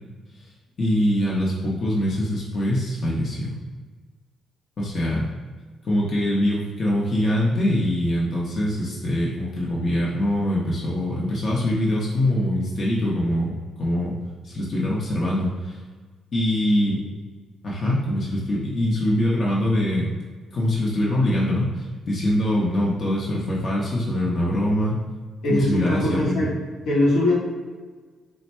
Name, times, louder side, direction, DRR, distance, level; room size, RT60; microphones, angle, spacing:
voice 1, 0.8-3.6 4.8-5.3 5.8-14.1 14.4-15.8 16.3-17.0 17.6-20.1 20.5-25.0 25.5-26.4, left 1 dB, 50° left, -5 dB, 0.7 m, -23 dB
voice 2, 25.4-26.5 26.8-27.4, left 1 dB, 80° left, -4 dB, 1.0 m, -21 dB
3.3 x 2.1 x 4.2 m, 1.4 s
cardioid pair, 90°, 0 cm